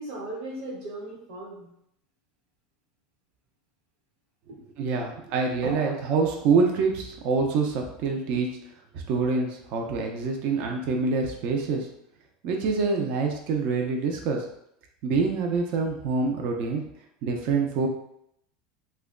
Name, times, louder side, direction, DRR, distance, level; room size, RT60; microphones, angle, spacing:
voice 1, 0.0-1.7 4.5-4.6 5.6-5.9, right 1 dB, 80° right, -6 dB, 1.1 m, -36 dB
voice 2, 4.8-8.5 8.9-11.9 12.4-14.5 15.0-16.8 17.2-17.9, right 4 dB, 45° right, 1 dB, 0.5 m, -26 dB
2.9 x 2.2 x 3.6 m, 0.74 s
supercardioid pair, 175°, 3 cm